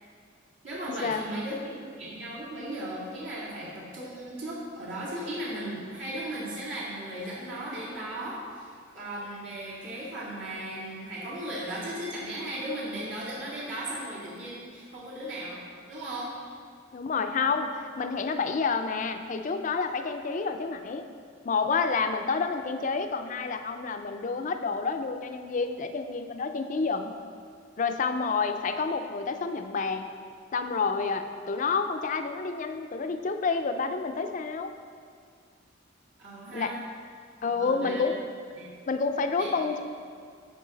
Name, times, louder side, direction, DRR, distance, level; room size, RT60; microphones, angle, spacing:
voice 1, 0.6-15.6 15.9-16.3 36.2-36.8 37.4-38.0 38.5-38.7 39.4-39.5, right 1 dB, 70° right, -8 dB, 1.9 m, -36 dB
voice 2, 16.9-21.0 21.4-27.1 27.8-30.1 30.5-34.7 36.5-36.7 37.4-38.2 38.9-39.8, left 4 dB, 40° left, 7 dB, 0.4 m, -29 dB
10.0 x 4.6 x 4.0 m, 2.1 s
head